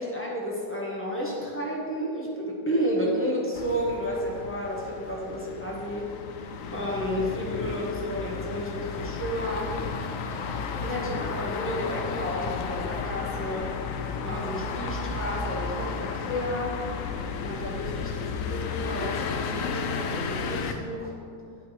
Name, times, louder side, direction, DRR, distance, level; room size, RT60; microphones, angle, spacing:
voice 1, 0.0-6.2 6.7-9.7 10.8-13.7 14.2-16.8 17.4-21.1, equal, 10° left, -4 dB, 0.7 m, -31 dB
sound 1, 3.5-20.7, left 5 dB, 80° left, 0.7 m, -33 dB
9.4 x 6.1 x 3.2 m, 2.4 s
omnidirectional pair, 2.0 m